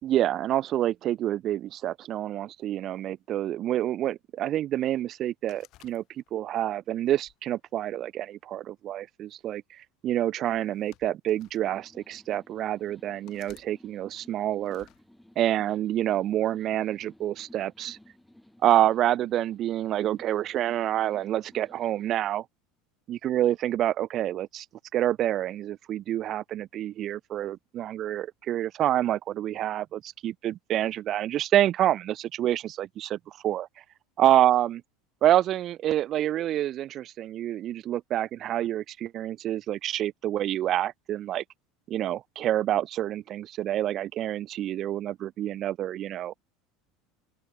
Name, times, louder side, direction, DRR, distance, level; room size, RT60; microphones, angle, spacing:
voice 1, 0.0-6.0 6.3-9.6 10.0-14.9 15.4-18.0 18.6-22.4 23.1-24.7 24.9-33.2 33.4-33.7 34.2-34.8 35.2-41.4 41.9-46.3, right 12 dB, 35° right, 0.4 m, -27 dB
sound 1, 5.5-6.5 7.2-8.3 9.3-9.6 10.6-11.6 12.3-12.4 13.3-13.7 14.6-15.0, left 17 dB, 45° left, 5.9 m, -57 dB
sound 2, 11.6-22.1, left 1 dB, ahead, 6.1 m, -57 dB
open air
supercardioid pair, 160°, 0 cm